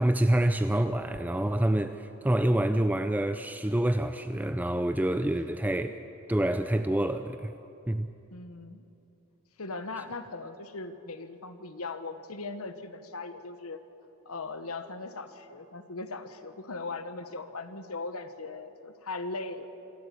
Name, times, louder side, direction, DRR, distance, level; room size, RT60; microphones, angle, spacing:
voice 1, 0.0-6.0 6.3-7.5 7.9-8.1, right 1 dB, 10° right, 9 dB, 0.4 m, -27 dB
voice 2, 8.3-8.9 9.6-13.8 14.2-19.7, left 3 dB, 80° left, 10 dB, 1.2 m, -39 dB
26.0 x 12.5 x 8.5 m, 2.9 s
head